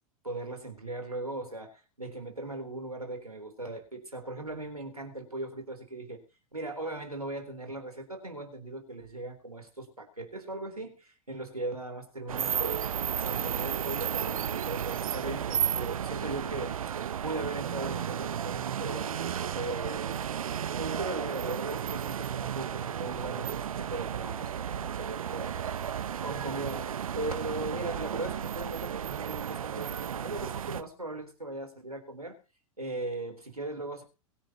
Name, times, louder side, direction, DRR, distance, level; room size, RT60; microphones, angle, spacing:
voice 1, 0.2-6.2 6.5-16.7 17.2-20.3 20.7-32.3 32.8-34.0, right 2 dB, 90° right, 3.8 m, -38 dB
sound 1, 12.3-30.8, right 9 dB, 70° right, 0.8 m, -33 dB
22.5 x 10.0 x 3.0 m
figure-of-eight pair, 90°, 18 cm